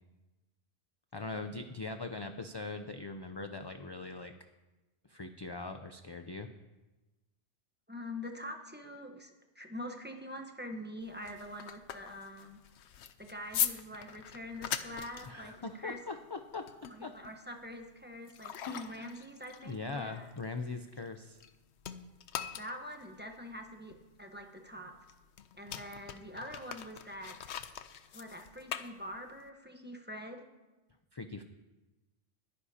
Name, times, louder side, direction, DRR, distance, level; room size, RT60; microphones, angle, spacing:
voice 1, 1.1-4.3 5.0-6.5 15.2-17.2 18.7-19.1 19.6-21.4 31.1-31.4, left 3 dB, 35° left, 7 dB, 0.4 m, -41 dB
voice 2, 7.9-12.6 13.2-16.0 16.9-20.3 22.6-24.9 25.5-27.4 28.1-30.5, left 1 dB, 10° right, 3 dB, 0.9 m, -45 dB
sound 1, 11.0-21.5 21.8-29.5, left 9 dB, 85° left, 0.9 m, -42 dB
21.5 x 9.9 x 2.8 m, 1.1 s
omnidirectional pair, 1.1 m